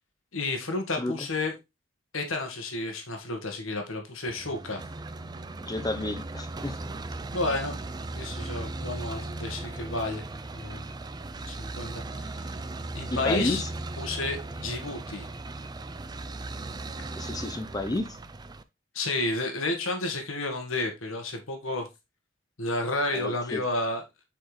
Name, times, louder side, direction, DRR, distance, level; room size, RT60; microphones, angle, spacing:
voice 1, 0.3-1.5 2.1-4.8 7.3-7.8 8.1-10.2 10.5-10.9 11.5-12.5 12.9-13.6 14.0-15.3 18.9-21.9 22.6-24.0, left 2 dB, 90° left, 1.6 m, -31 dB
sound 1, 4.3-18.6, right 2 dB, 20° right, 0.4 m, -37 dB
voice 2, 5.6-6.8 13.1-13.7 17.2-18.2 23.1-23.6, left 2 dB, 20° left, 0.8 m, -31 dB
7.5 x 4.4 x 3.2 m
head